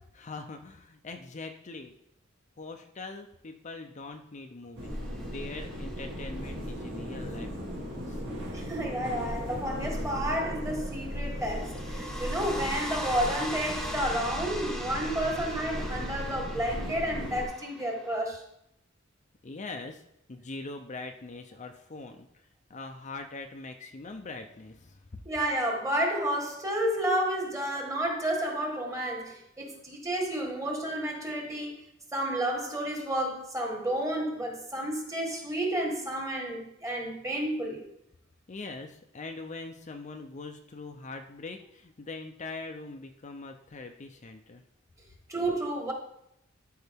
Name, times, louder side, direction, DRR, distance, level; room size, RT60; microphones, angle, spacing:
voice 1, 0.1-1.9 2.6-8.2 19.4-20.0 20.3-22.3 22.7-25.0 38.5-44.6, left 3 dB, 35° left, 0.6 m, -42 dB
sound 1, 4.8-17.5, equal, 60° right, 2.3 m, -37 dB
sound 2, 5.1-6.2 11.4-18.2, equal, 5° left, 0.9 m, -40 dB
voice 2, 8.5-18.4 25.2-31.8 32.1-37.8 45.3-45.9, right 1 dB, 15° right, 1.5 m, -31 dB
12.5 x 4.7 x 3.5 m
head